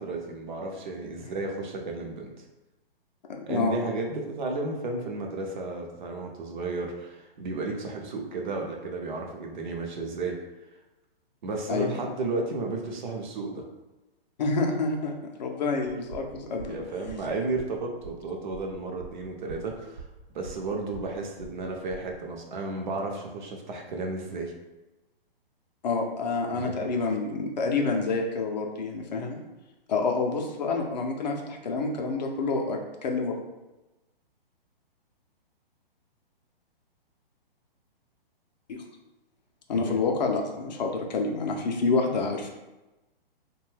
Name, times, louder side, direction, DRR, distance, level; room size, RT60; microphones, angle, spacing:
voice 1, 0.0-2.3 3.5-10.4 11.4-13.6 16.7-20.0 20.3-24.5 26.5-26.8 39.7-40.0, right 3 dB, 50° right, 1 dB, 0.6 m, -33 dB
voice 2, 3.3-3.8 11.7-11.9 14.4-16.7 25.8-29.4 29.9-33.3 38.7-38.8 39.7-42.5, left 3 dB, 45° left, 1 dB, 0.4 m, -28 dB
sound 1, 15.8-22.2, right 5 dB, 65° right, 1.0 m, -46 dB
2.6 x 2.2 x 3.2 m, 1.0 s
hypercardioid pair, 155°, 30 cm